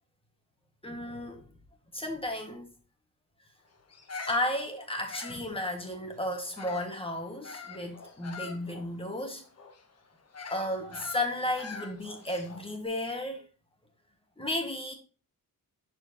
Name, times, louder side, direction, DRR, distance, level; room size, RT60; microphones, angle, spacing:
voice 1, 0.8-1.4 1.9-2.7 4.3-9.4 10.5-13.4 14.4-14.9, left 1 dB, 15° left, 1.6 m, -33 dB
Bird vocalization bird call bird song, 3.9-7.0 7.4-12.7, left 5 dB, 45° left, 1.3 m, -44 dB
11.5 x 4.4 x 2.8 m
wide cardioid pair, 135°, 36 cm